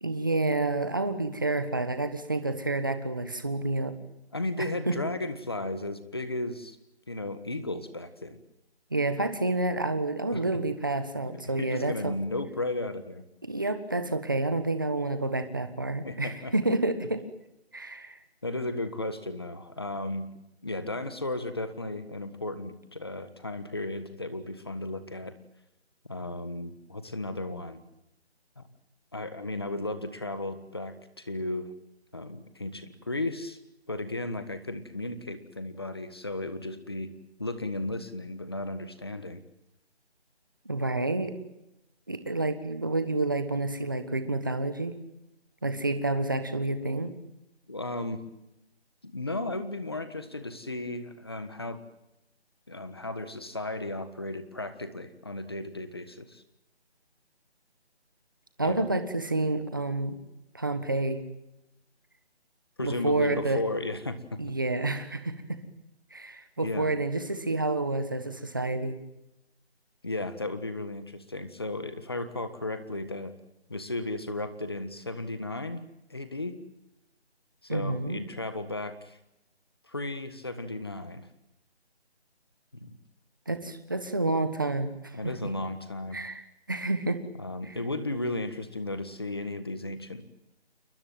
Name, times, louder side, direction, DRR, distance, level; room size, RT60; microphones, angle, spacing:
voice 1, 0.0-3.9 4.9-5.0 8.9-12.1 13.5-17.2 17.7-18.2 40.6-41.3 42.1-45.0 45.6-47.1 58.6-60.2 60.5-61.3 62.8-63.6 64.4-65.6 66.1-69.0 77.7-78.3 83.5-85.5 86.1-87.2 87.7-87.8, right 2 dB, 20° right, 9 dB, 1.3 m, -29 dB
voice 2, 4.3-6.8 7.1-8.4 10.3-10.4 11.2-13.2 16.0-16.5 18.4-20.3 20.6-25.3 26.1-27.8 28.6-28.7 29.1-31.7 32.1-33.6 33.9-37.1 37.4-39.4 47.7-48.2 49.0-51.8 52.7-56.4 58.6-58.9 62.8-64.2 66.6-66.9 70.0-73.3 73.7-75.8 76.1-76.6 77.6-79.2 79.9-81.3 82.8-83.0 85.1-86.2 87.4-90.2, left 2 dB, 25° left, 11 dB, 1.5 m, -34 dB
29.5 x 19.5 x 9.3 m, 0.88 s
figure-of-eight pair, 180°, 33 cm